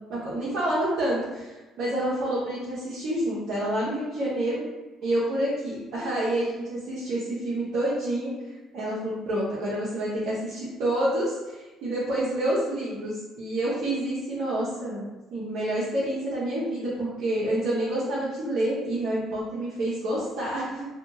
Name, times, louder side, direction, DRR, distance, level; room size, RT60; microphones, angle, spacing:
voice 1, 0.0-4.7 5.0-8.3 8.7-20.9, right 1 dB, 70° right, -9 dB, 0.8 m, -28 dB
2.6 x 2.3 x 2.7 m, 1.1 s
supercardioid pair, 80°, 0 cm